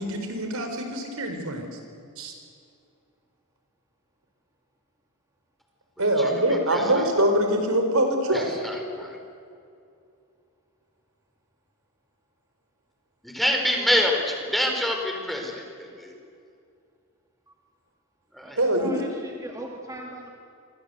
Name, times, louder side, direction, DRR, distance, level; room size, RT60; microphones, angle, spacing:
voice 1, 0.0-1.8 2.2-2.3 6.0-8.6 18.6-19.0, right 1 dB, 80° right, 5 dB, 4.7 m, -24 dB
voice 2, 8.6-9.2 13.2-16.1 18.3-18.6, left 1 dB, ahead, 1 dB, 4.4 m, -26 dB
voice 3, 18.8-20.3, right 1 dB, 15° right, 1 dB, 2.3 m, -38 dB
28.0 x 25.0 x 8.1 m, 2.5 s
head